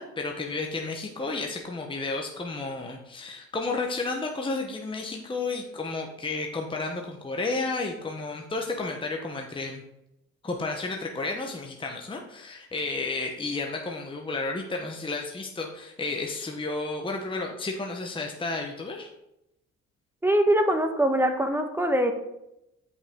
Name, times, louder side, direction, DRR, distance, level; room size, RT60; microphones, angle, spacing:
voice 1, 0.0-9.8 10.4-19.1, left 3 dB, 15° left, 1 dB, 0.9 m, -32 dB
voice 2, 20.2-22.1, right 1 dB, 10° right, 5 dB, 1.1 m, -23 dB
8.5 x 5.5 x 3.6 m, 0.87 s
cardioid pair, 90°, 30 cm